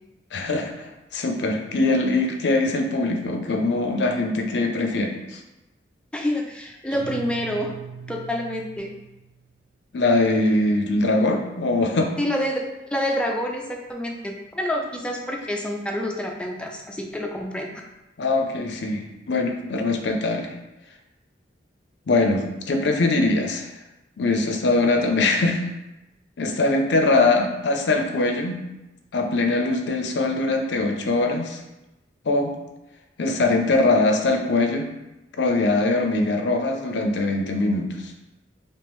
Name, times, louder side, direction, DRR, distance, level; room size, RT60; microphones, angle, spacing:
voice 1, 0.3-5.4 9.9-12.1 18.2-20.5 22.1-23.7 24.2-25.6 26.4-28.6 29.1-31.6 32.3-32.5 33.2-34.9 35.4-38.1, left 2 dB, 65° left, 3 dB, 0.5 m, -22 dB
voice 2, 6.1-7.8 8.1-8.9 12.2-17.8, equal, 5° left, 1 dB, 0.3 m, -28 dB
Guitar, 6.9-9.5, right 5 dB, 75° right, 0.6 m, -40 dB
3.5 x 2.7 x 3.0 m, 0.98 s
head